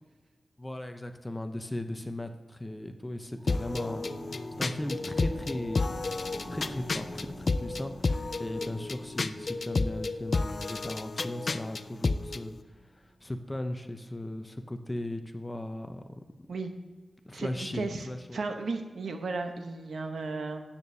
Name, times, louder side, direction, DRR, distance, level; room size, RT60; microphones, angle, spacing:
voice 1, 0.6-5.9 6.5-12.6 13.2-16.1 17.2-18.4, left 1 dB, 15° left, 7 dB, 0.7 m, -37 dB
sound 1, 3.3-13.3, right 1 dB, 25° right, 2.0 m, -47 dB
sound 2, 3.5-12.4, left 3 dB, 45° left, 0.3 m, -31 dB
voice 2, 17.3-20.6, right 3 dB, 90° right, 5 dB, 0.9 m, -35 dB
13.0 x 8.6 x 2.8 m, 1.4 s
wide cardioid pair, 115°, 0 cm